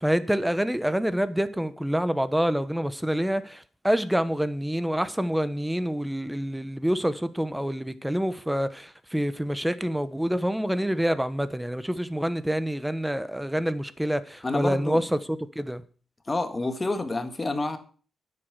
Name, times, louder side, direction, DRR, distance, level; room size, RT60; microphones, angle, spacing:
voice 1, 0.0-15.2 15.5-15.8, equal, 5° right, 1.0 m, -27 dB
voice 2, 14.4-15.0 16.3-17.8, left 2 dB, 25° left, 1.8 m, -28 dB
9.8 x 8.0 x 8.1 m
cardioid pair, 95°, 0 cm